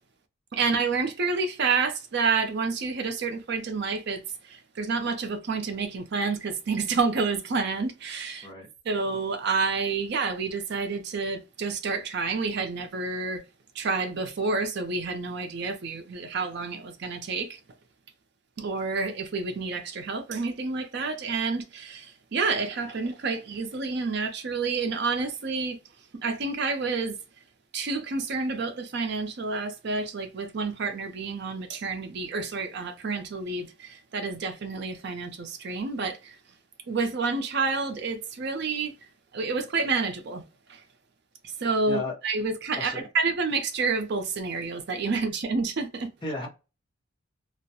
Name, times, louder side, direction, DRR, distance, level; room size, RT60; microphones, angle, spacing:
voice 1, 0.5-8.5 8.8-13.4 13.7-17.6 18.6-25.8 26.2-27.2 27.7-36.4 36.9-38.9 39.3-40.4 40.7-40.8 41.6-46.1, right 4 dB, 55° right, 0.5 m, -29 dB
voice 2, 8.4-8.7 41.9-42.1 42.8-43.0 46.2-46.5, left 2 dB, 25° left, 0.7 m, -33 dB
2.3 x 2.0 x 2.7 m
head